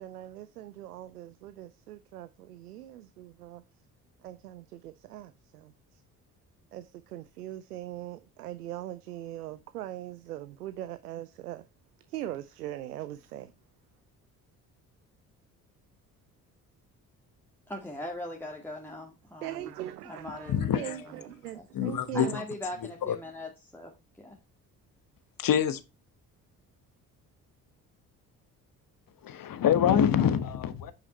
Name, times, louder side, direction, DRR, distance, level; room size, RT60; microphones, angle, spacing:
voice 1, 0.0-3.6 4.2-6.0 6.7-11.6 12.1-13.5 19.4-22.5, right 13 dB, 90° right, 0.5 m, -41 dB
voice 2, 17.7-19.7 20.0-21.0 21.5-21.6 22.1-24.4, left 1 dB, 5° left, 1.9 m, -40 dB
voice 3, 20.5-20.9 21.7-22.4 23.1-23.2 25.4-25.8 29.2-30.9, left 9 dB, 50° left, 1.2 m, -25 dB
9.6 x 6.4 x 3.1 m
hypercardioid pair, 45°, 45 cm